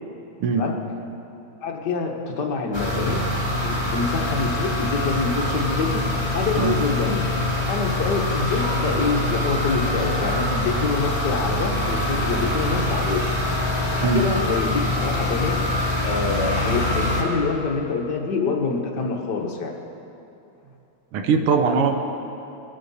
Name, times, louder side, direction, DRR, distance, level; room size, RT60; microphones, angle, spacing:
voice 1, 1.6-3.3 3.6-6.0 6.3-7.2 7.6-13.4 13.9-15.6 16.0-19.8, left 4 dB, 55° left, 1 dB, 1.7 m, -26 dB
sound 1, 2.7-17.2, left 1 dB, 10° left, 2.0 m, -24 dB
voice 2, 21.1-21.9, right 5 dB, 90° right, 5 dB, 1.9 m, -20 dB
21.0 x 12.0 x 4.2 m, 2.8 s
omnidirectional pair, 2.4 m